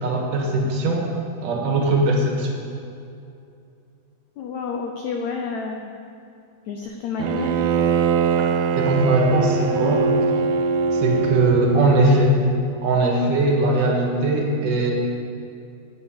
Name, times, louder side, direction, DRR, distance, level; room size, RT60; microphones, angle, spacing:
voice 1, 0.0-1.1 1.4-2.5 8.7-10.1 10.9-12.4 12.8-14.9, right 2 dB, 65° right, 0 dB, 2.9 m, -20 dB
voice 2, 4.4-5.9 6.7-7.6, left 5 dB, 80° left, 2 dB, 1.6 m, -29 dB
Bowed string instrument, 7.2-12.1, right 5 dB, 80° right, 2.5 m, -22 dB
11.0 x 9.7 x 7.2 m, 2.6 s
omnidirectional pair, 4.3 m